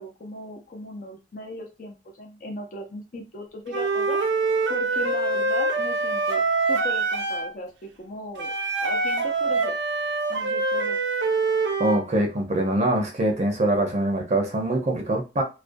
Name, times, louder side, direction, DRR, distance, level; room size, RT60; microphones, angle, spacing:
voice 1, 0.0-4.2 4.7-6.4 6.7-8.5 8.8-9.8 10.3-11.0, left 1 dB, 50° left, 0.5 m, -37 dB
Wind instrument woodwind instrument, 3.7-7.5 8.4-12.0, right 3 dB, 80° right, 0.6 m, -25 dB
voice 2, 11.8-15.4, right 1 dB, 40° right, 0.6 m, -23 dB
2.4 x 2.2 x 2.5 m
head